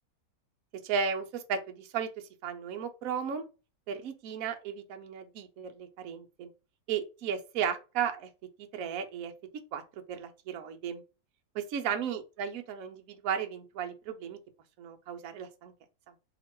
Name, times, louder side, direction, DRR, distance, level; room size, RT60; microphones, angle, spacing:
voice 1, 0.8-2.1 2.4-3.5 3.9-6.5 6.9-8.3 8.7-9.8 10.1-11.0 11.5-14.4 14.8-15.7, right 7 dB, 60° right, 1.0 m, -35 dB
3.0 x 2.9 x 4.4 m
omnidirectional pair, 1.8 m